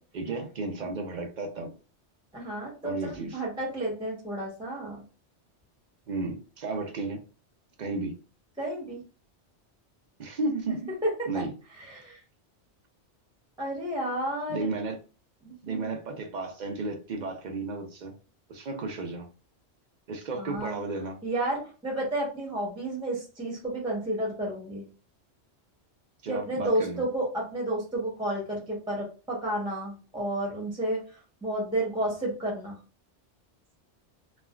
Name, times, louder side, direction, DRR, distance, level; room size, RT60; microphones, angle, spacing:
voice 1, 0.1-1.7 2.8-3.4 6.1-7.2 7.8-8.1 10.2-10.9 11.3-11.5 14.5-15.0 15.6-18.1 18.5-19.3 20.1-21.2 26.2-27.0, right 3 dB, 55° right, 4 dB, 0.5 m, -33 dB
voice 2, 2.3-5.0 8.6-9.0 11.0-11.3 11.7-12.2 13.6-14.7 15.4-15.9 20.4-20.8 21.2-24.9 26.3-32.8, right 1 dB, 5° right, -2 dB, 0.7 m, -31 dB
3.2 x 2.1 x 2.2 m, 0.35 s
omnidirectional pair, 1.2 m